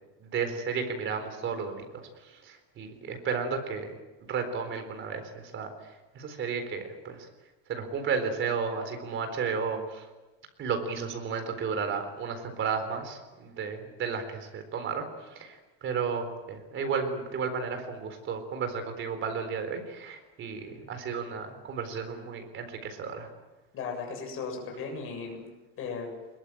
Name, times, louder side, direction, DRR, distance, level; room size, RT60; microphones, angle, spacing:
voice 1, 0.2-1.8 2.3-3.9 4.3-5.7 6.1-7.3 7.7-10.0 10.6-15.0 15.3-23.3, right 5 dB, 30° right, 7 dB, 4.1 m, -33 dB
voice 2, 23.7-25.4 25.8-26.1, left 5 dB, 35° left, 2 dB, 7.5 m, -36 dB
22.0 x 22.0 x 9.1 m, 1.1 s
cardioid pair, 170°, 37 cm